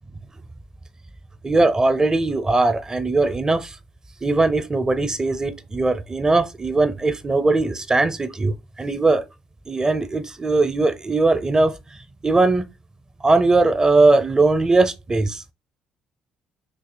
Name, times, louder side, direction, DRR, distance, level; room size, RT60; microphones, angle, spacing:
voice 1, 1.4-3.8 4.2-9.2 9.7-11.7 12.2-12.6 13.2-15.4, right 3 dB, 20° right, 0.6 m, -19 dB
6.2 x 2.8 x 2.2 m
hypercardioid pair, 60°, 3 cm